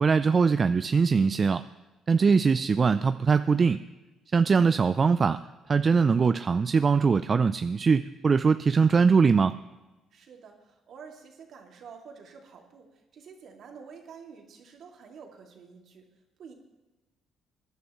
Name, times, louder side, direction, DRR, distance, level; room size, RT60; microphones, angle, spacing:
voice 1, 0.0-1.6 2.1-3.8 4.3-5.4 5.7-9.5, right 5 dB, 35° right, 12 dB, 0.4 m, -22 dB
voice 2, 10.1-16.1 16.4-16.5, right 6 dB, 60° right, 2 dB, 2.3 m, -48 dB
21.5 x 11.0 x 3.1 m, 1.1 s
cardioid pair, 90°, 0 cm